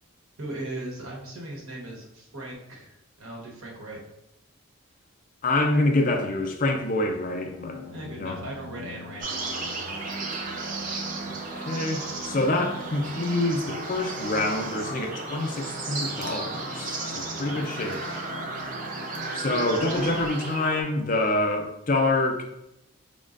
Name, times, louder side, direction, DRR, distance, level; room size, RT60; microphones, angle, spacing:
voice 1, 0.4-4.0 7.9-9.9 17.4-18.4, right 1 dB, 80° right, -2 dB, 1.1 m, -39 dB
voice 2, 5.4-7.8 8.2-8.4 11.6-18.0 19.3-22.4, left 2 dB, 40° left, 3 dB, 0.5 m, -26 dB
sound 1, 7.2-20.3, equal, 65° left, 0.9 m, -40 dB
sound 2, 9.2-20.8, right 3 dB, 40° right, 0.6 m, -34 dB
5.3 x 3.6 x 2.5 m, 0.87 s
head